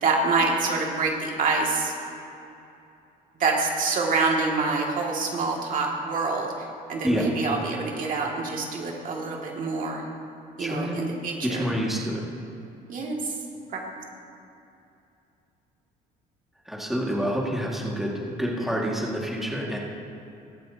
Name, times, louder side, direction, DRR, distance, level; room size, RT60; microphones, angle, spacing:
voice 1, 0.0-1.9 3.4-10.0 10.6-11.6 12.9-13.3 13.7-13.8, right 3 dB, 50° right, -1 dB, 2.3 m, -26 dB
voice 2, 7.0-7.6 10.6-11.0 11.4-12.2 16.7-19.8, equal, ahead, -3 dB, 2.0 m, -28 dB
21.5 x 8.4 x 2.8 m, 2.7 s
cardioid pair, 110°, 17 cm